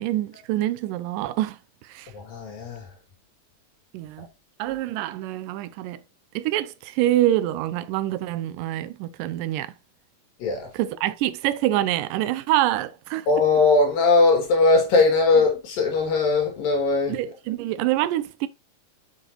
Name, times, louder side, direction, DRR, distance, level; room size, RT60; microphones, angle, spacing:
voice 1, 0.0-1.6 1.8-2.1 3.9-4.3 4.6-6.0 6.4-9.7 10.7-13.3 17.1-18.5, right 14 dB, 80° right, 2.1 m, -26 dB
voice 2, 2.1-2.9 10.4-10.7 13.3-17.2, left 3 dB, 85° left, 4.1 m, -20 dB
8.1 x 6.0 x 3.0 m
omnidirectional pair, 3.9 m